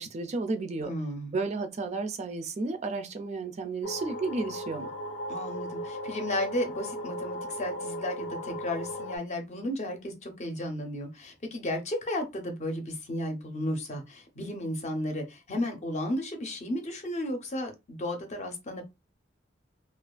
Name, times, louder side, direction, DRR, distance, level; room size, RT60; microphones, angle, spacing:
voice 1, 0.0-0.9 1.3-4.9, right 3 dB, 40° right, 0.3 m, -32 dB
voice 2, 0.8-1.3 5.3-18.8, left 1 dB, 40° left, 0.6 m, -33 dB
sound 1, 3.8-9.2, equal, 85° left, 0.5 m, -37 dB
2.4 x 2.4 x 2.2 m
head